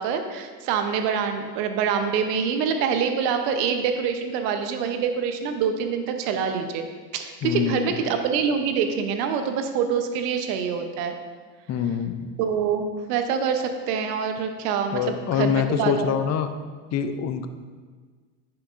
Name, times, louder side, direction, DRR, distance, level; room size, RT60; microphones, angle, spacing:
voice 1, 0.0-6.8 7.1-11.2 12.4-16.2, right 6 dB, 70° right, 7 dB, 0.9 m, -25 dB
voice 2, 7.4-8.0 11.7-12.2 14.9-16.5 16.9-17.5, left 8 dB, 35° left, 9 dB, 0.6 m, -25 dB
9.7 x 5.9 x 2.5 m, 1.5 s
hypercardioid pair, 80°, 49 cm